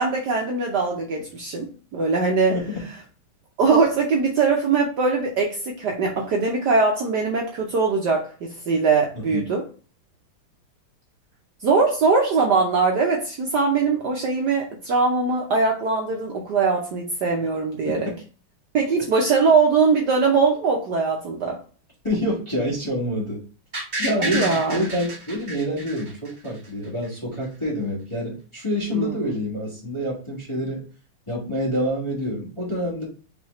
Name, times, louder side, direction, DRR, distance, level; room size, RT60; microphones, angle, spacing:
voice 1, 0.0-2.6 3.6-9.6 11.6-18.1 18.7-21.6 24.2-24.8 28.9-29.3, right 4 dB, 65° right, 0 dB, 1.2 m, -21 dB
voice 2, 22.0-23.4 24.0-30.8 31.3-33.0, equal, 15° left, -5 dB, 1.4 m, -27 dB
sound 1, 23.7-26.7 27.0-27.1, right 2 dB, 30° right, 2.0 m, -30 dB
4.8 x 3.6 x 3.1 m, 0.37 s
omnidirectional pair, 2.4 m